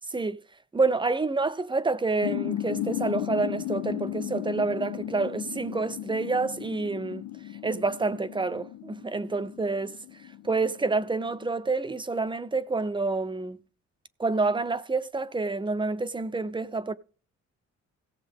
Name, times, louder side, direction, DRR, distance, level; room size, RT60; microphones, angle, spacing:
voice 1, 0.7-7.2 7.6-9.9 10.4-13.6 14.2-16.9, right 3 dB, 15° right, 0.6 m, -28 dB
sound 1, 2.2-11.4, left 14 dB, 75° left, 0.5 m, -35 dB
17.0 x 7.0 x 3.5 m
cardioid pair, 90°, 30 cm